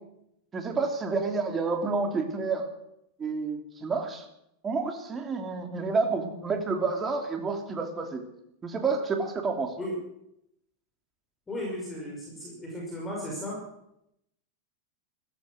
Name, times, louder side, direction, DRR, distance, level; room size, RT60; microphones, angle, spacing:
voice 1, 0.5-2.7 3.2-4.3 4.6-8.2 8.6-9.7, right 4 dB, 20° right, 5 dB, 2.9 m, -29 dB
voice 2, 11.5-13.6, left 1 dB, 15° left, -2 dB, 5.6 m, -35 dB
15.0 x 14.0 x 6.5 m, 0.79 s
supercardioid pair, 125°, 0 cm